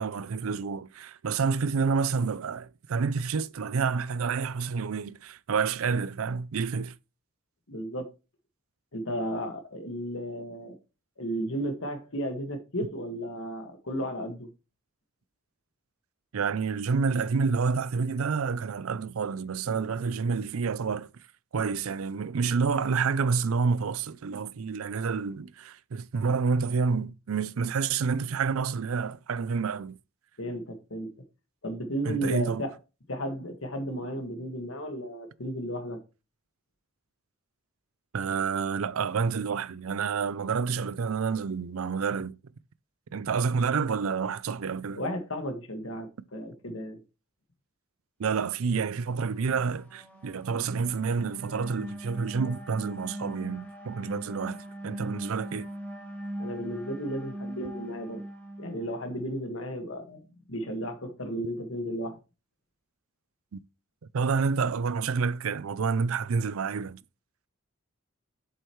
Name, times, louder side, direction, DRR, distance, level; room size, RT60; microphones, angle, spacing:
voice 1, 0.0-7.0 16.3-21.1 21.5-30.0 32.0-32.6 38.1-42.4 43.1-45.0 48.2-55.7 63.5-63.6 64.1-67.0, right 5 dB, 70° right, 0.5 m, -29 dB
voice 2, 7.7-8.1 8.9-10.7 11.2-14.5 30.4-31.1 31.6-32.7 33.1-36.0 45.0-47.0 56.4-58.2 58.6-60.2 60.5-62.2, equal, 65° left, 1.8 m, -34 dB
sound 1, 48.7-59.2, right 1 dB, 10° left, 2.8 m, -41 dB
8.0 x 7.9 x 3.1 m
head